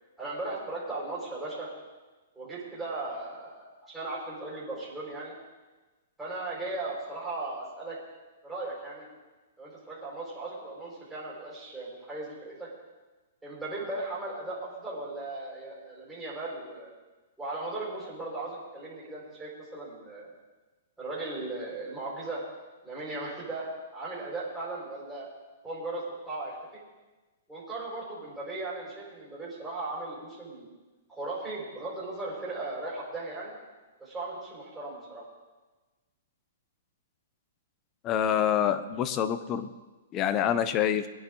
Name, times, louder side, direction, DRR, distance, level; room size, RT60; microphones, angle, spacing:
voice 1, 0.2-1.7 2.3-5.3 6.2-8.0 8.4-9.1 9.6-12.7 13.4-16.9 17.4-20.3 21.0-22.4 22.8-25.3 25.6-26.8 27.5-30.7 31.1-33.5 34.0-35.2, right 2 dB, 5° right, -7 dB, 5.1 m, -37 dB
voice 2, 38.0-39.7 40.1-41.1, left 9 dB, 25° left, 12 dB, 0.8 m, -26 dB
22.5 x 10.5 x 3.9 m, 1.2 s
hypercardioid pair, 150°, 0 cm